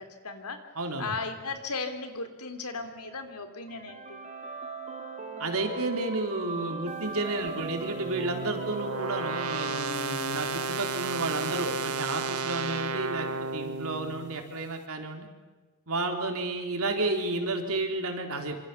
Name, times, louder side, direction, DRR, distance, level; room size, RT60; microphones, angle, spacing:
voice 1, 0.0-0.6 1.0-4.2 16.2-16.4, left 3 dB, 85° left, 7 dB, 3.3 m, -36 dB
voice 2, 0.8-1.1 5.4-15.3 15.9-18.5, right 2 dB, 70° right, 3 dB, 4.1 m, -31 dB
sound 1, 3.7-10.7, right 4 dB, 35° right, 4.0 m, -39 dB
sound 2, 7.5-14.6, right 3 dB, 90° right, 1.7 m, -33 dB
27.0 x 26.5 x 7.2 m, 1.3 s
head